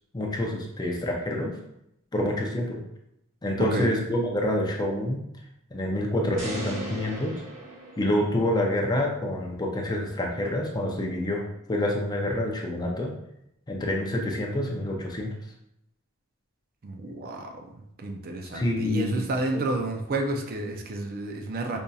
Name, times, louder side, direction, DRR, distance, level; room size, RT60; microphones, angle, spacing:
voice 1, 0.1-1.5 2.1-2.8 3.4-5.2 5.7-7.4 8.0-13.1 13.7-15.3 18.5-19.7, left 1 dB, 20° left, 0 dB, 0.5 m, -27 dB
voice 2, 3.6-3.9 16.8-17.5 18.0-21.8, right 2 dB, 45° right, 3 dB, 0.5 m, -30 dB
sound 1, 6.4-8.7, right 1 dB, 65° right, 1.1 m, -38 dB
5.1 x 2.7 x 2.3 m, 0.80 s
head